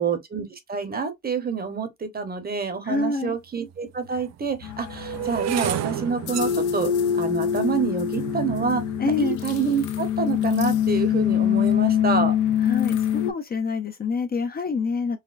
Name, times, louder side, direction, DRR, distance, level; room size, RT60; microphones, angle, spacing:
voice 1, 0.0-6.9 7.2-12.4, right 5 dB, 30° right, 0.9 m, -27 dB
voice 2, 2.8-3.4 9.0-9.4 12.6-15.2, left 4 dB, 30° left, 0.5 m, -26 dB
sound 1, 3.2-3.3 4.0-10.2 10.9-11.2 11.5-11.9, right 10 dB, 60° right, 0.4 m, -33 dB
sound 2, 4.6-13.3, left 9 dB, 75° left, 0.6 m, -24 dB
4.0 x 2.1 x 2.5 m
cardioid pair, 90°, 30 cm